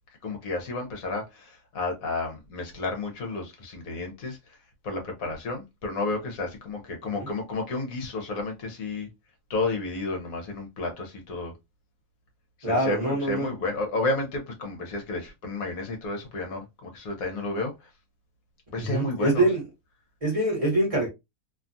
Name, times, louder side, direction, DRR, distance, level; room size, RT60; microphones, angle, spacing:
voice 1, 0.2-4.4 4.8-9.1 9.5-11.5 12.6-17.7 18.7-19.5, left 3 dB, 70° left, 1.2 m, -31 dB
voice 2, 12.6-13.5 18.8-19.6 20.2-21.1, right 1 dB, 25° right, 1.0 m, -24 dB
2.8 x 2.3 x 2.5 m
omnidirectional pair, 1.6 m